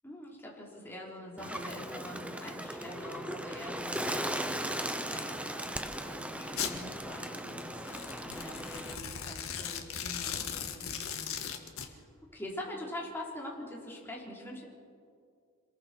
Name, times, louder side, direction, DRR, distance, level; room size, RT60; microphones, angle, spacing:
voice 1, 0.0-7.8 8.2-11.5 11.8-12.0 12.3-14.6, left 1 dB, 10° left, -3 dB, 4.1 m, -44 dB
Bird, 1.4-9.0, right 1 dB, 5° right, 1.0 m, -37 dB
Domestic sounds home sounds, 6.6-6.8 7.8-11.9, left 8 dB, 80° left, 1.8 m, -38 dB
27.0 x 21.0 x 4.7 m, 2.2 s
head